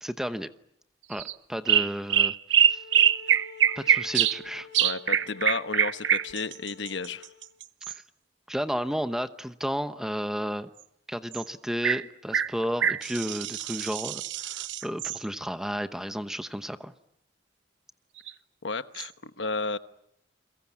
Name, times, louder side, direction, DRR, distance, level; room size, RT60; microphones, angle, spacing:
voice 1, 0.0-0.5 1.1-2.4 2.7-2.8 3.7-4.7 7.9-8.0 8.5-10.7 11.1-16.9, equal, 5° right, 10 dB, 1.0 m, -32 dB
sound 1, 1.1-1.3 1.7-4.4 4.7-8.0 11.3-11.4 11.8-12.0 12.3-15.2 18.2-18.3 19.0-19.1, right 9 dB, 85° right, 1.0 m, -24 dB
sound 2, 2.6-7.5, left 4 dB, 70° left, 7.1 m, -48 dB
voice 2, 4.8-7.3 18.6-19.8, left 4 dB, 85° left, 11 dB, 1.1 m, -32 dB
30.0 x 23.0 x 7.4 m, 0.74 s
head